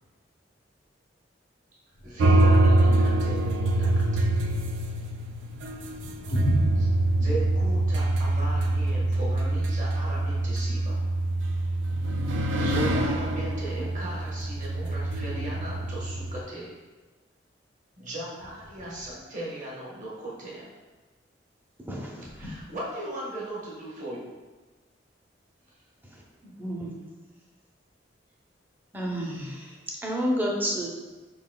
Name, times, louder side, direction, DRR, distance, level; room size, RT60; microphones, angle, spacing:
voice 1, 2.0-4.3 7.2-11.0 12.6-16.8 18.0-20.7 22.4-24.2, right 1 dB, 45° right, -5 dB, 1.2 m, -37 dB
sound 1, 2.2-16.4, right 2 dB, 80° right, 0.4 m, -25 dB
voice 2, 5.9-7.3 7.9-8.0 8.6-8.7 18.7-19.0 22.4-22.7, right 1 dB, 65° left, -1 dB, 0.7 m, -33 dB
voice 3, 21.9-22.2 26.6-26.9 28.9-29.7 30.0-30.9, equal, 10° right, -2 dB, 0.6 m, -29 dB
4.7 x 3.8 x 2.2 m, 1.3 s
head